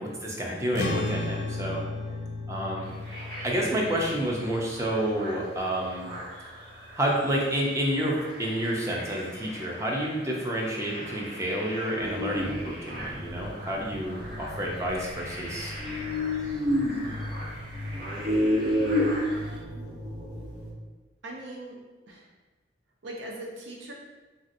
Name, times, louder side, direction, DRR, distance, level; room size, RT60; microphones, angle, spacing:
voice 1, 0.0-1.8 2.5-2.9 3.4-6.1 7.0-15.7, right 1 dB, 15° right, -2 dB, 0.4 m, -29 dB
sound 1, 0.7-7.4, left 2 dB, 70° left, 0.4 m, -36 dB
sound 2, 2.8-19.6, right 1 dB, 60° right, 1.3 m, -43 dB
sound 3, 12.0-20.7, left 1 dB, 45° right, 1.0 m, -30 dB
voice 2, 19.3-19.8 21.2-21.8 22.1-22.3 23.0-23.9, right 1 dB, 85° right, -1 dB, 0.6 m, -41 dB
3.1 x 2.7 x 2.5 m, 1.3 s
head